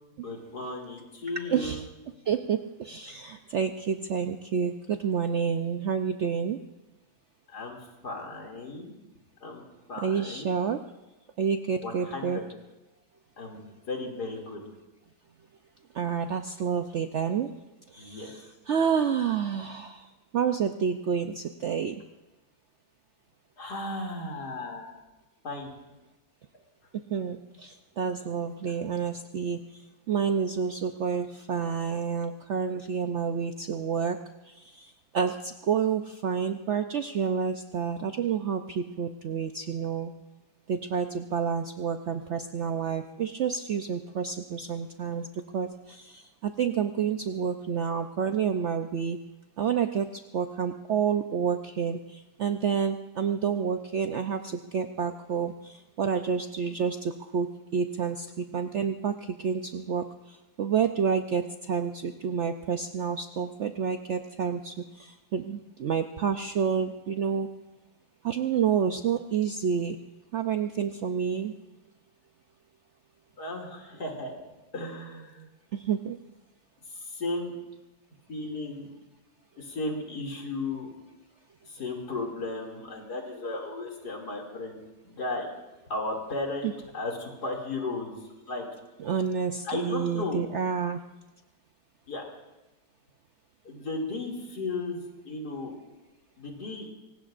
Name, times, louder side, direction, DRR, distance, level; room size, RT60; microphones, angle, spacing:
voice 1, 0.2-1.8 7.5-8.9 9.4-9.6 9.9-10.7 11.8-12.4 13.4-14.6 18.0-18.3 23.6-24.9 25.4-25.7 73.4-74.4 74.7-75.5 76.9-77.5 78.3-78.9 79.6-80.9 81.7-85.5 85.9-88.2 88.5-88.7 89.6-90.5 92.1-92.2 93.6-95.7 96.4-96.9, left 2 dB, 65° left, 0 dB, 3.2 m, -35 dB
voice 2, 1.5-1.8 2.3-6.6 10.0-10.8 11.4-12.4 15.9-17.5 17.9-20.1 20.3-21.9 27.1-29.6 30.1-34.2 34.5-34.9 35.1-40.1 40.7-45.3 45.5-49.2 49.6-50.1 50.3-60.0 60.6-67.5 68.2-70.0 70.3-71.5 75.7-76.2 89.0-91.0, right 7 dB, 65° right, 7 dB, 0.7 m, -29 dB
24.5 x 18.5 x 2.5 m, 1.1 s
omnidirectional pair, 1.8 m